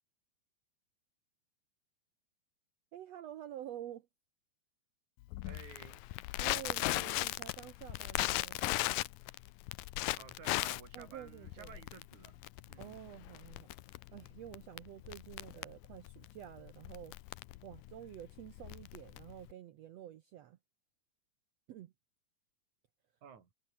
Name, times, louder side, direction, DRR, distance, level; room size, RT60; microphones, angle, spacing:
voice 1, 2.9-4.1 6.4-8.6 10.9-11.7 12.8-17.1 17.6-20.6 21.7-21.9, right 11 dB, 80° right, 1.4 m, -49 dB
Crackle, 5.3-19.5, left 18 dB, 80° left, 2.2 m, -38 dB
voice 2, 5.4-6.0 6.7-7.2 10.2-13.0 23.2-23.5, right 7 dB, 55° right, 4.5 m, -54 dB
omnidirectional pair, 4.2 m